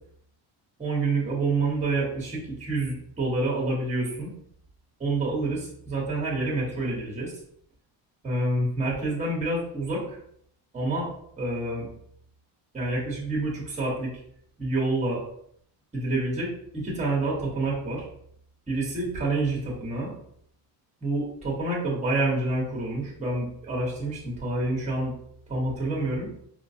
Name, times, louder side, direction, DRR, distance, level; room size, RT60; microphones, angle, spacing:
voice 1, 0.8-4.3 5.0-7.3 8.2-10.2 10.7-11.1 11.4-11.9 12.7-14.1 14.6-15.2 15.9-16.5 16.8-18.1 18.7-20.1 21.0-25.1 25.5-26.3, right 2 dB, 15° right, -3 dB, 1.2 m, -28 dB
4.5 x 2.2 x 2.7 m, 0.68 s
cardioid pair, 140°, 44 cm